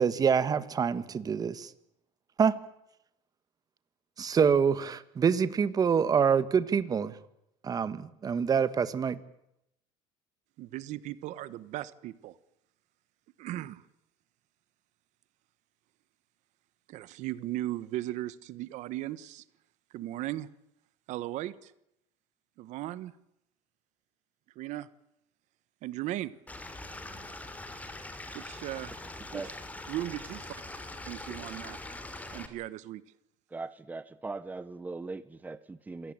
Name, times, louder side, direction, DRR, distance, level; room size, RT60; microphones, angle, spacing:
voice 1, 0.0-1.7 2.4-2.5 4.2-7.1 7.6-9.2, right 6 dB, 30° right, 14 dB, 1.5 m, -26 dB
voice 2, 10.6-12.4 13.4-13.8 16.9-19.4 19.9-20.5 21.1-21.7 22.6-23.1 24.5-24.9 25.8-26.3 28.3-28.9 29.3-29.4 29.9-30.5 31.1-31.8 32.3-33.0, right 15 dB, 60° right, 16 dB, 1.3 m, -37 dB
Stream / Liquid, 26.5-32.5, left 2 dB, 10° left, 3.2 m, -43 dB
voice 3, 33.5-36.1, right 3 dB, 10° right, 14 dB, 0.9 m, -40 dB
26.5 x 17.5 x 9.0 m, 0.81 s
cardioid pair, 135°, 13 cm